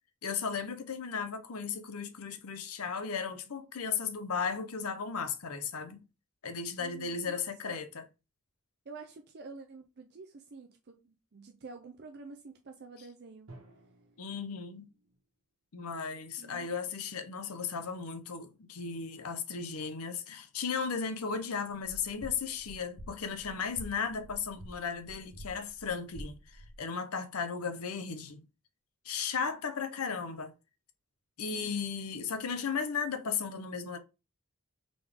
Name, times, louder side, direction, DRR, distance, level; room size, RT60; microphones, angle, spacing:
voice 1, 0.2-6.0 6.4-8.0 14.2-14.9 15.7-28.4 29.0-30.5 31.4-34.0, left 6 dB, 75° left, 0.7 m, -35 dB
voice 2, 6.8-7.4 7.6-7.8 8.9-13.5 16.4-16.7 31.5-32.3, right 4 dB, 50° right, 0.5 m, -49 dB
Drum, 13.5-15.4, right 1 dB, 65° right, 1.3 m, -56 dB
sound 1, 21.7-26.8, equal, 55° left, 1.5 m, -49 dB
3.8 x 3.4 x 3.5 m
head